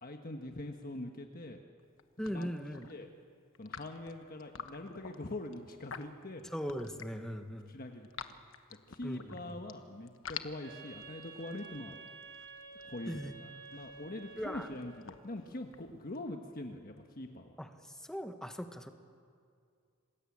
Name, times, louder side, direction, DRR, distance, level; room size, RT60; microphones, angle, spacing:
voice 1, 0.0-1.6 2.3-2.5 2.9-3.1 3.6-6.5 7.7-8.1 8.9-12.0 12.8-17.6, left 1 dB, 45° left, 3 dB, 1.4 m, -43 dB
sound 1, 1.8-2.0 2.3-2.9 3.5-7.3 7.7-9.7 10.1-16.2, left 7 dB, 65° left, 1.2 m, -48 dB
voice 2, 2.2-2.9 6.5-7.7 9.0-9.6 13.1-13.4 14.4-14.7 17.6-18.9, equal, 5° left, 6 dB, 1.4 m, -40 dB
Wind instrument woodwind instrument, 10.6-15.1, right 4 dB, 65° right, 5.4 m, -51 dB
27.5 x 20.5 x 8.7 m, 2.3 s
head